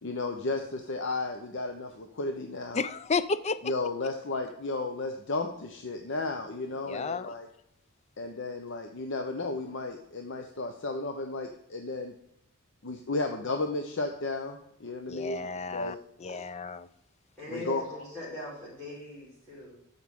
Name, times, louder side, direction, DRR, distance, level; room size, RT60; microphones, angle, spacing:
voice 1, 0.0-2.8 3.6-7.5 8.2-12.1 12.8-16.5 17.5-17.8, left 3 dB, 60° left, 4 dB, 0.8 m, -34 dB
voice 2, 2.7-3.7 6.9-7.3 15.1-16.9, left 4 dB, 30° left, 14 dB, 0.4 m, -32 dB
voice 3, 17.4-19.8, left 2 dB, 5° left, -12 dB, 4.2 m, -41 dB
13.5 x 5.6 x 3.7 m, 0.77 s
head